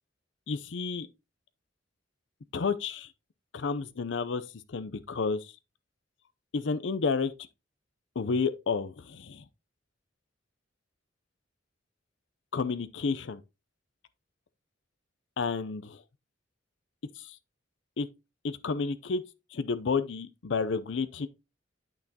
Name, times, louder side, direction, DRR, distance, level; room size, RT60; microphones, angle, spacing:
voice 1, 0.5-1.1 2.5-3.1 3.5-4.4 4.7-5.5 6.5-7.3 8.2-9.4 12.5-13.4 15.4-16.0 17.2-17.4 18.0-18.1 18.4-19.2 19.5-21.3, left 4 dB, 65° left, 0.5 m, -31 dB
8.9 x 6.0 x 2.8 m
head